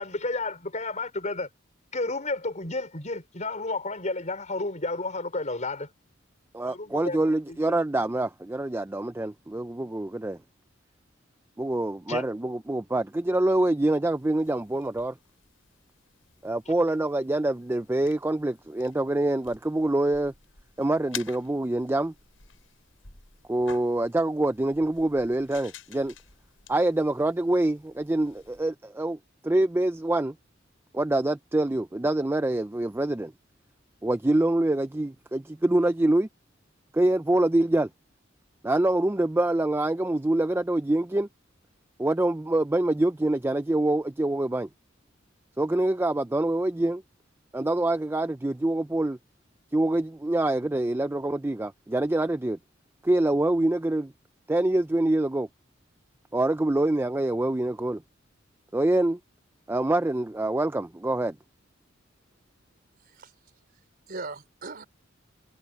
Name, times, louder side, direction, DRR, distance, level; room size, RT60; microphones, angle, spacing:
voice 1, 0.0-1.5 1.9-5.9 6.6-7.2 7.5-7.6 12.1-12.3, left 2 dB, 40° left, 5.3 m, -31 dB
voice 2, 6.5-10.4 11.6-15.1 16.4-20.3 20.8-22.1 23.5-26.1 26.7-29.2 29.4-30.3 30.9-33.3 34.0-36.3 36.9-37.9 38.6-41.3 42.0-44.7 45.6-47.0 47.5-49.2 49.7-52.6 53.0-54.1 54.5-55.5 56.3-58.0 58.7-59.2 59.7-61.4, right 1 dB, 10° right, 0.4 m, -25 dB
sound 1, 14.1-28.7, left 9 dB, 80° left, 6.6 m, -49 dB
voice 3, 63.0-63.8 64.1-64.9, right 3 dB, 50° right, 3.9 m, -40 dB
head